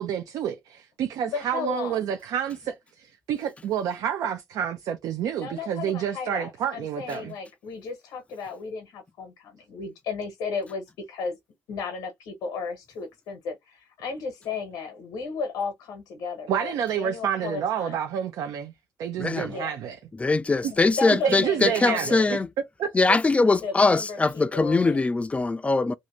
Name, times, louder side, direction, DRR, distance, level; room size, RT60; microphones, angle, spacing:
voice 1, 0.0-7.3 16.5-18.7 19.0-20.0 20.6-20.7 21.2-22.4 22.8-22.9, right 9 dB, 80° right, 0.5 m, -29 dB
voice 2, 1.3-2.0 5.4-11.4 11.7-18.0 19.5-19.8 20.7-22.3 23.5-25.1, left 5 dB, 85° left, 0.8 m, -34 dB
voice 3, 19.2-19.5 20.2-22.5 22.9-25.9, left 3 dB, 20° left, 0.4 m, -22 dB
2.7 x 2.5 x 3.0 m
cardioid pair, 85°, 6 cm